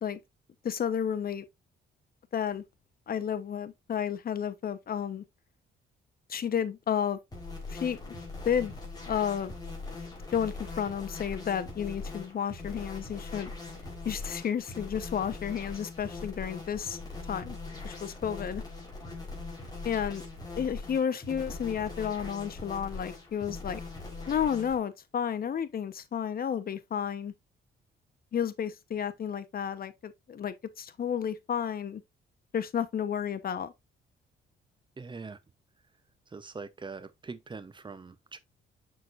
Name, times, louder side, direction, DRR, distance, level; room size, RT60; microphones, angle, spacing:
voice 1, 0.6-1.4 2.3-2.6 3.1-5.2 6.3-7.2 7.7-8.1 8.4-8.7 9.1-9.5 10.3-13.5 14.0-17.0 17.3-17.6 17.8-18.6 19.8-20.2 20.6-23.8 24.3-27.3 28.3-32.0 32.5-33.7, left 8 dB, 50° left, 1.0 m, -31 dB
sound 1, 7.3-24.8, left 3 dB, 20° left, 3.9 m, -41 dB
voice 2, 35.0-35.4 36.3-38.4, right 4 dB, 25° right, 0.8 m, -42 dB
6.7 x 6.1 x 2.5 m
cardioid pair, 90°, 20 cm